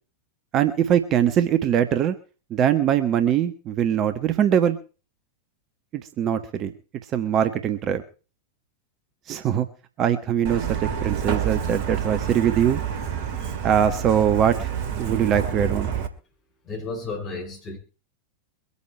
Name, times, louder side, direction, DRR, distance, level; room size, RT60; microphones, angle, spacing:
voice 1, 0.5-2.1 2.5-4.8 5.9-6.7 7.1-8.0 9.3-9.7 10.0-10.8 11.0-12.8 13.6-14.7 15.0-15.9, right 9 dB, 30° right, 10 dB, 1.3 m, -22 dB
Truck, 10.4-16.1, right 8 dB, 45° right, 2.0 m, -28 dB
voice 2, 16.6-17.8, left 3 dB, 30° left, -1 dB, 8.0 m, -32 dB
24.0 x 8.6 x 4.4 m, 0.36 s
figure-of-eight pair, 90°, 0 cm